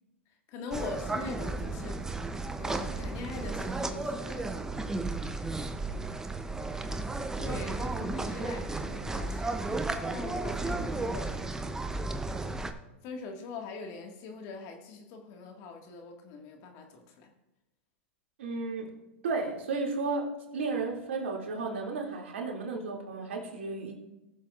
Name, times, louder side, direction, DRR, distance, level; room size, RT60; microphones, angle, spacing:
voice 1, 0.5-4.5 5.9-6.6 7.4-11.4 13.0-17.3, left 3 dB, 50° left, 3 dB, 1.9 m, -42 dB
sound 1, 0.7-12.7, right 2 dB, 10° right, 0.7 m, -34 dB
voice 2, 18.4-18.9 19.2-23.9, right 3 dB, 75° right, -1 dB, 2.6 m, -33 dB
19.5 x 7.0 x 2.5 m, 1.0 s
hypercardioid pair, 110°, 7 cm